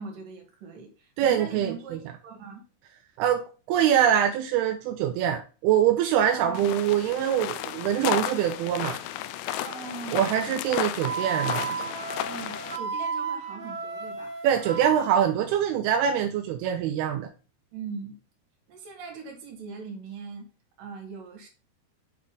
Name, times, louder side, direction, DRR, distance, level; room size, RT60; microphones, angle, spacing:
voice 1, 0.0-2.6 6.3-6.8 9.6-10.5 12.3-14.3 17.7-18.2 18.7-20.5 20.8-21.5, right 5 dB, 60° right, 3.3 m, -40 dB
voice 2, 1.2-2.0 3.2-9.0 10.1-11.8 14.4-17.3, right 9 dB, 85° right, 2.5 m, -24 dB
sound 1, 6.5-12.8, left 12 dB, 80° left, 2.3 m, -33 dB
Wind instrument woodwind instrument, 11.0-15.2, right 5 dB, 35° right, 2.4 m, -33 dB
7.6 x 4.3 x 3.8 m
omnidirectional pair, 4.6 m